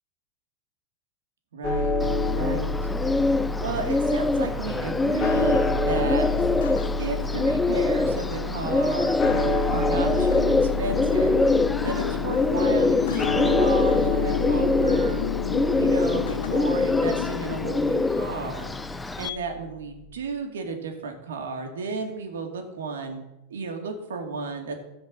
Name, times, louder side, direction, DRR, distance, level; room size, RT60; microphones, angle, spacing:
voice 1, 1.5-1.9 2.4-2.9 3.4-6.3 7.0-9.2 9.7-11.3 11.8-15.2 15.8-23.2 23.5-24.8, right 4 dB, 90° right, 3 dB, 2.5 m, -33 dB
sound 1, 1.6-19.5, left 2 dB, 30° left, 1.7 m, -29 dB
Bird, 2.0-19.3, left 2 dB, 10° left, 0.5 m, -25 dB
sound 2, 3.6-19.4, left 11 dB, 75° left, 0.8 m, -33 dB
14.5 x 5.2 x 9.0 m, 0.93 s
hypercardioid pair, 115°, 0 cm